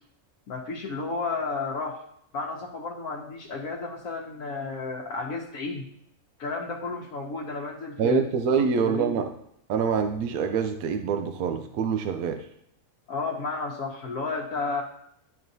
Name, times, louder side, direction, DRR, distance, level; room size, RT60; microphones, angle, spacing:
voice 1, 0.5-2.0 2.3-5.8 6.4-8.2 8.5-9.2 13.1-14.8, left 3 dB, 70° left, -1 dB, 1.2 m, -32 dB
voice 2, 8.0-9.3 9.7-12.5, right 6 dB, 80° right, 7 dB, 1.0 m, -25 dB
10.5 x 5.5 x 2.7 m, 0.74 s
omnidirectional pair, 1.5 m